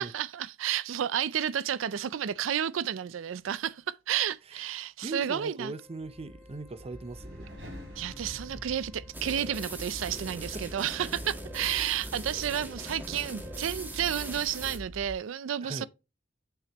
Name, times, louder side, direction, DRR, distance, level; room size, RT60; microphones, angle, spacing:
voice 1, 0.0-5.7 8.0-15.9, right 9 dB, 90° right, 0.4 m, -31 dB
voice 2, 5.0-7.5 10.5-10.6 15.6-15.9, right 2 dB, 30° right, 0.5 m, -40 dB
Wind instrument woodwind instrument, 5.6-14.8, left 1 dB, 5° left, 2.6 m, -58 dB
sound 1, 6.0-15.1, equal, 60° right, 3.6 m, -45 dB
sound 2, 9.1-14.8, right 1 dB, 10° right, 1.5 m, -41 dB
8.7 x 6.6 x 3.0 m
head